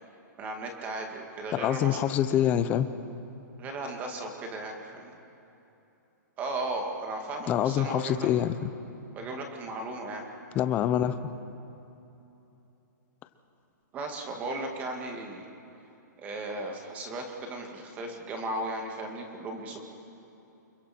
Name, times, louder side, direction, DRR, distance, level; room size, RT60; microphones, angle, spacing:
voice 1, 0.4-2.1 3.6-5.1 6.4-8.3 9.1-10.3 13.9-15.5 16.2-19.8, right 2 dB, 15° right, 2 dB, 2.1 m, -36 dB
voice 2, 1.5-2.9 7.5-8.7 10.5-11.3, left 10 dB, 15° left, 12 dB, 0.6 m, -26 dB
29.5 x 21.5 x 4.4 m, 3.0 s
hypercardioid pair, 165°, 10 cm